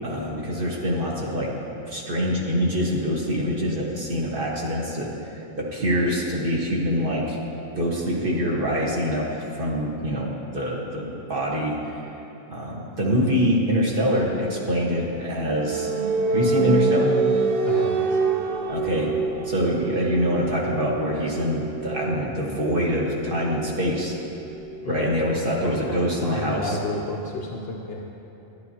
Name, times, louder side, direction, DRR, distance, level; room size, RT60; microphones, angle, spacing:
voice 1, 0.0-1.5 1.9-5.1 5.6-7.4 7.8-11.7 12.5-15.9 16.3-17.1 18.7-19.1 19.4-24.1 24.9-26.8, equal, 40° right, -4 dB, 1.4 m, -25 dB
sound 1, 14.6-26.1, right 4 dB, 65° right, 0.5 m, -27 dB
voice 2, 17.6-18.2 24.8-25.2 25.4-28.0, left 2 dB, 55° left, -1 dB, 0.7 m, -32 dB
11.5 x 10.0 x 2.8 m, 3.0 s
omnidirectional pair, 1.5 m